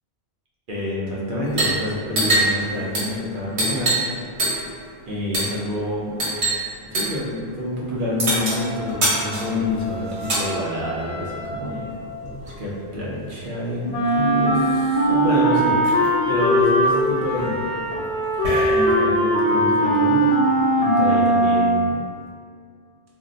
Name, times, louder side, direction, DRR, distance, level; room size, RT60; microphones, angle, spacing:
voice 1, 0.7-4.0 5.1-6.1 6.9-11.9 12.4-17.6 18.7-20.2 20.8-22.0, left 1 dB, 55° right, -6 dB, 0.8 m, -27 dB
sound 1, 1.5-1.8 2.1-4.1 4.4-4.8 5.3-5.6 6.2-6.6 6.9-7.2 8.2-10.5 11.5-12.6 13.8-13.9 14.2-14.8 15.3-15.4 15.6-16.1 16.6-19.1, right 2 dB, 75° right, 1.2 m, -25 dB
Wind instrument woodwind instrument, 8.5-12.4, right 1 dB, 5° right, 0.7 m, -36 dB
Wind instrument woodwind instrument 2, 13.9-22.0, right 1 dB, 75° left, 0.9 m, -19 dB
2.6 x 2.0 x 3.8 m, 2.2 s
omnidirectional pair, 1.1 m